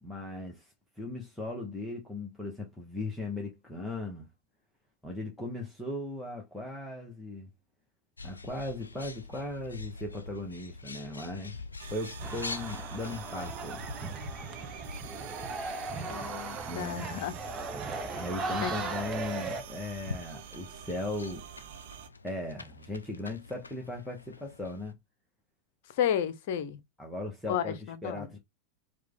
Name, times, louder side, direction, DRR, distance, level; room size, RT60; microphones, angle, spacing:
voice 1, 0.0-4.3 5.0-7.5 8.2-11.6 11.9-13.8 16.7-17.3 18.1-21.5 22.2-24.9 27.0-28.4, left 2 dB, 5° left, 1.1 m, -38 dB
Bird, 8.2-24.9, left 3 dB, 75° left, 0.5 m, -46 dB
sound 1, 11.8-22.1, right 10 dB, 55° right, 0.5 m, -47 dB
sound 2, 12.2-19.6, right 3 dB, 25° right, 0.9 m, -37 dB
voice 2, 16.1-17.3 18.6-18.8 26.0-26.8 27.5-28.3, left 9 dB, 50° left, 0.8 m, -32 dB
4.8 x 2.4 x 3.6 m
figure-of-eight pair, 90°, 0 cm